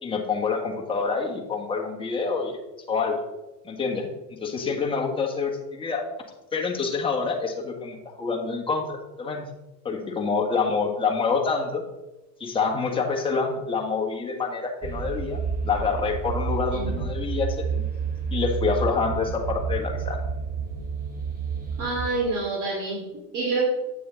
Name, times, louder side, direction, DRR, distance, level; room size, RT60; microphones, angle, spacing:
voice 1, 0.0-2.6 2.9-3.2 3.6-6.1 6.5-9.4 9.8-11.8 12.4-17.8 18.3-20.2, left 4 dB, 10° left, 0 dB, 1.5 m, -27 dB
sound 1, 14.8-22.2, right 5 dB, 15° right, 1.2 m, -30 dB
voice 2, 21.8-23.0 23.3-23.6, right 3 dB, 40° right, -5 dB, 2.9 m, -27 dB
8.5 x 6.8 x 3.9 m, 1.0 s
hypercardioid pair, 115°, 49 cm